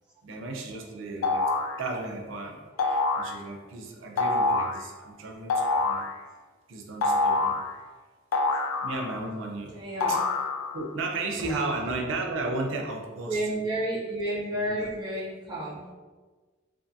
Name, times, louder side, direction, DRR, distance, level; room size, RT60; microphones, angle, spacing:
voice 1, 0.2-6.1 6.7-7.6 8.8-9.8 10.1-10.2 10.7-13.6 14.5-14.9, right 2 dB, 75° right, 2 dB, 0.4 m, -34 dB
sound 1, 1.2-1.8 2.8-3.3 4.2-4.8 5.5-6.1 7.0-7.7 8.3-9.3 10.0-10.8, left 3 dB, 85° left, 0.3 m, -26 dB
voice 2, 9.7-10.2 11.2-11.8 13.3-15.9, right 1 dB, 20° right, -9 dB, 0.5 m, -31 dB
2.5 x 2.5 x 2.5 m, 1.4 s
head